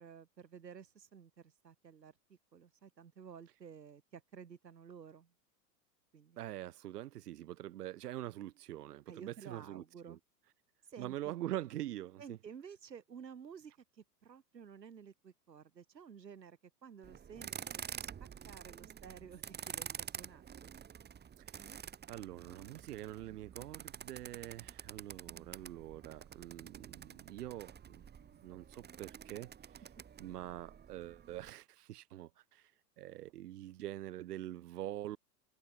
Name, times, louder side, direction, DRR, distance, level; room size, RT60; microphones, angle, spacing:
voice 1, 0.0-5.3 6.1-6.4 9.1-10.2 10.9-11.4 12.2-18.1 18.4-20.7 24.6-24.8, right 7 dB, 85° right, 7.6 m, -53 dB
voice 2, 6.4-10.2 11.0-12.4 21.4-21.7 22.1-28.0 28.4-29.8 30.2-32.7 33.0-35.2, right 14 dB, 70° right, 6.5 m, -44 dB
sound 1, 17.0-31.5, right 8 dB, 20° right, 2.2 m, -49 dB
hypercardioid pair, 105°, 49 cm